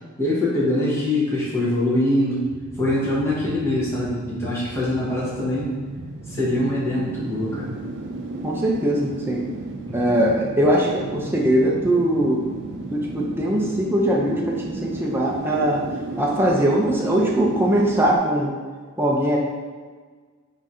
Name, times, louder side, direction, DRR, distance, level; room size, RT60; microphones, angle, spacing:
voice 1, 0.2-2.5 2.8-5.7 6.3-7.8 9.9-10.0, left 1 dB, 15° left, -8 dB, 1.1 m, -23 dB
sound 1, 2.5-18.2, right 2 dB, 60° right, 0.5 m, -34 dB
voice 2, 8.4-9.4 9.9-12.4 12.9-15.8 16.2-18.5 19.0-19.4, right 1 dB, 10° right, -3 dB, 0.6 m, -21 dB
3.9 x 2.8 x 4.8 m, 1.5 s
head